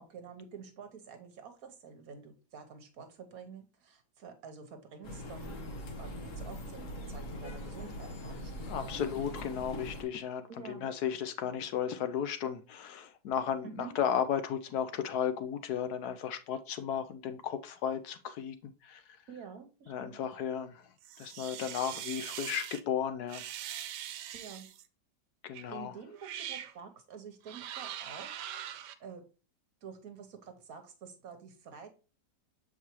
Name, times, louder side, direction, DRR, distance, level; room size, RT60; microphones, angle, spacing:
voice 1, 0.0-9.0 10.5-10.9 13.6-13.9 19.3-20.2 24.3-24.7 25.7-29.3 29.8-31.9, right 5 dB, 60° right, 1.3 m, -49 dB
sound 1, 5.0-10.0, equal, 50° left, 1.5 m, -42 dB
voice 2, 8.7-19.0 19.9-20.9 21.2-23.4 25.4-25.9, left 8 dB, 70° left, 1.1 m, -34 dB
sound 2, 21.0-22.8 23.3-24.8 25.5-25.7 26.2-26.7 27.4-28.9, right 11 dB, 85° right, 1.2 m, -42 dB
7.0 x 4.6 x 3.0 m
omnidirectional pair, 1.8 m